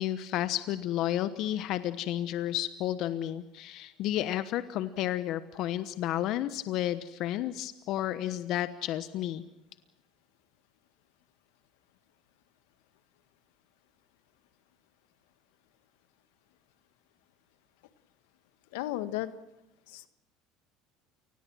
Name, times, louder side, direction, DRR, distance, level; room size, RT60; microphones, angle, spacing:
voice 1, 0.0-9.4, left 13 dB, 65° left, 13 dB, 1.1 m, -32 dB
voice 2, 18.7-19.3 19.9-20.1, left 15 dB, 85° left, 13 dB, 1.4 m, -33 dB
29.0 x 20.0 x 6.2 m, 0.94 s
supercardioid pair, 100°, 0 cm